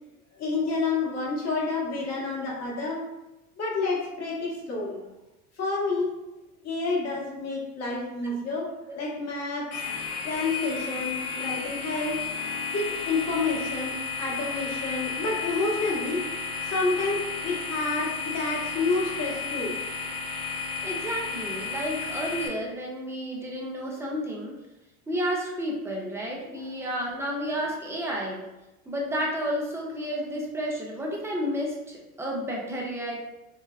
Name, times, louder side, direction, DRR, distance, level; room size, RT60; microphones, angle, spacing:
voice 1, 0.4-3.0 3.6-5.0 5.6-6.1 6.6-8.7 9.0-9.7 10.2-12.2 12.7-16.2 16.7-19.7 26.4-26.7, left 3 dB, 35° left, -4 dB, 1.1 m, -29 dB
sound 1, 9.7-22.5, left 5 dB, 55° left, 0.8 m, -33 dB
voice 2, 20.8-24.6 25.1-28.4 28.9-33.2, equal, 5° right, -2 dB, 0.5 m, -31 dB
3.4 x 2.1 x 2.3 m, 1.0 s
hypercardioid pair, 85°, 46 cm